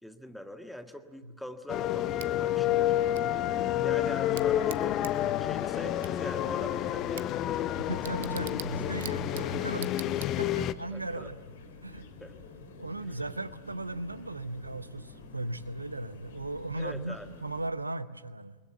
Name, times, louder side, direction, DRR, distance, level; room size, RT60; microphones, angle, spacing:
voice 1, 0.0-2.9 3.8-5.0 5.4-7.9 10.9-11.3 11.9-12.3 16.8-17.3, left 1 dB, ahead, 6 dB, 1.7 m, -42 dB
sound 1, 1.7-10.7, left 12 dB, 35° left, 0.7 m, -29 dB
Bicycle / Tick, 2.2-10.8, right 13 dB, 55° right, 0.8 m, -48 dB
sound 2, 2.5-17.7, left 4 dB, 60° left, 2.6 m, -48 dB
voice 2, 7.9-9.9 10.2-11.4 11.8-12.1 12.8-17.2 17.4-18.6, right 2 dB, 80° right, 15 dB, 0.8 m, -37 dB
29.0 x 20.5 x 8.2 m, 1.4 s
figure-of-eight pair, 90°, 0 cm